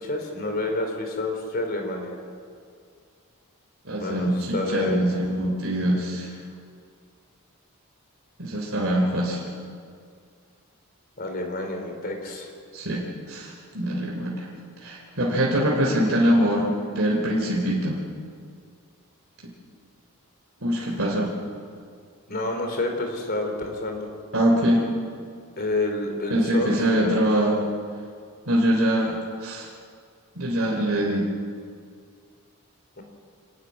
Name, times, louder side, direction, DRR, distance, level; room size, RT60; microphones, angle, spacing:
voice 1, 0.0-2.2 4.0-5.0 11.2-12.5 22.3-24.1 25.6-26.7 33.0-33.1, left 2 dB, 45° left, 3 dB, 3.7 m, -29 dB
voice 2, 3.8-6.3 8.4-9.4 12.7-13.0 13.3-14.5 14.8-18.0 20.6-21.3 24.3-24.8 26.3-27.6 28.5-29.1 29.4-29.7 30.3-31.2, equal, 65° right, -3 dB, 3.2 m, -23 dB
26.0 x 12.0 x 9.7 m, 2.2 s
head